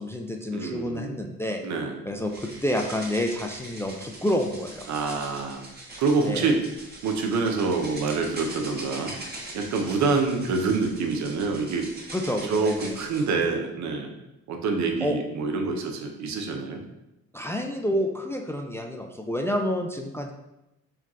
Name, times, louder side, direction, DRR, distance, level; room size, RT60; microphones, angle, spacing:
voice 1, 0.0-1.6 2.1-4.9 6.2-6.5 12.1-12.9 15.0-15.2 17.3-20.3, equal, 10° left, 3 dB, 0.3 m, -29 dB
voice 2, 0.5-1.2 1.6-2.0 4.9-5.6 6.0-6.6 7.0-9.1 9.5-11.9 12.5-14.1 14.5-16.8, right 4 dB, 70° right, 3 dB, 0.7 m, -26 dB
sound 1, 2.2-13.3, right 1 dB, 30° right, 1.2 m, -42 dB
4.5 x 2.3 x 3.6 m, 0.92 s
cardioid pair, 90°, 30 cm